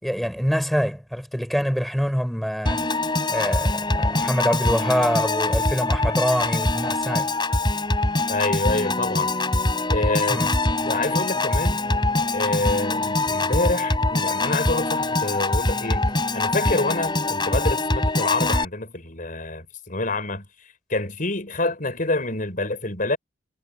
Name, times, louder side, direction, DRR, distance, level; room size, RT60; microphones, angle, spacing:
voice 1, 0.0-2.8 3.3-7.3 10.3-10.5 13.3-13.4, equal, ahead, 4.8 m, -25 dB
Piano / Organ, 2.7-18.7, left 2 dB, 25° left, 5.3 m, -23 dB
voice 2, 8.3-9.4 9.9-11.8 12.3-20.5 20.9-23.2, left 2 dB, 50° left, 4.9 m, -27 dB
head